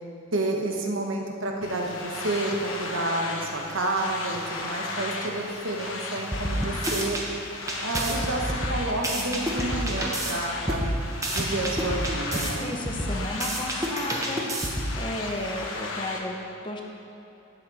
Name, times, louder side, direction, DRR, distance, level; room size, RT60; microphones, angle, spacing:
voice 1, 0.3-7.2 7.8-10.8 11.3-12.7, right 2 dB, 75° right, 0 dB, 1.3 m, -30 dB
sound 1, 1.6-16.2, left 3 dB, 75° left, 1.1 m, -36 dB
sound 2, 6.3-7.2 7.7-10.3 10.7-12.5 12.9-15.0, right 1 dB, 15° right, 1.0 m, -29 dB
voice 2, 12.6-16.4 16.6-16.8, left 1 dB, 25° left, 1 dB, 0.8 m, -34 dB
12.0 x 8.3 x 4.2 m, 2.9 s
head